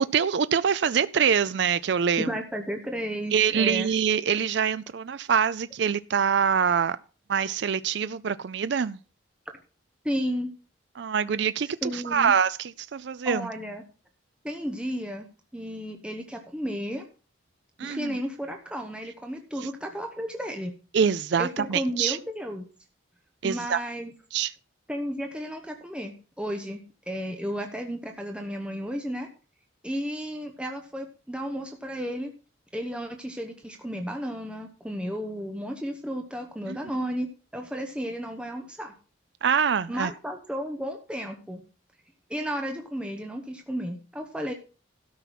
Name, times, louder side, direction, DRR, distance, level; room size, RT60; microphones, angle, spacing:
voice 1, 0.0-2.3 3.3-7.0 7.3-9.0 11.0-13.5 17.8-18.2 19.6-19.7 20.9-22.2 23.4-23.8 24.3-24.5 36.7-36.8 39.4-40.1, right 7 dB, 60° right, 0.4 m, -25 dB
voice 2, 2.2-3.9 10.0-10.5 11.8-12.3 13.2-13.8 14.4-15.3 15.5-17.0 17.8-20.8 21.4-22.7 23.4-24.1 24.9-29.3 29.8-32.3 32.7-37.3 37.5-38.9 39.9-41.6 42.3-44.5, equal, 5° right, 1.0 m, -33 dB
13.0 x 5.8 x 5.9 m
head